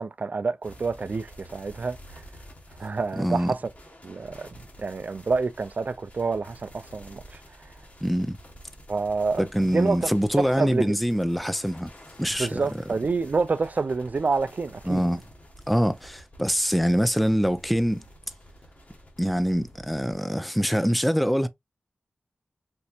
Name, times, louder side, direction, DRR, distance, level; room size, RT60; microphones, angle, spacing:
voice 1, 0.0-2.0 2.8-3.6 4.0-4.5 4.8-7.2 8.9-9.4 9.7-10.1 10.4-10.9 12.4-15.0, right 4 dB, 50° right, 0.4 m, -27 dB
sound 1, 0.6-20.1, equal, 45° left, 1.5 m, -49 dB
voice 2, 3.1-3.5 8.0-8.4 9.4-11.9 12.2-12.6 14.9-15.2 15.7-18.0 19.2-21.5, equal, ahead, 0.5 m, -24 dB
4.4 x 2.7 x 2.4 m
cardioid pair, 60°, 3 cm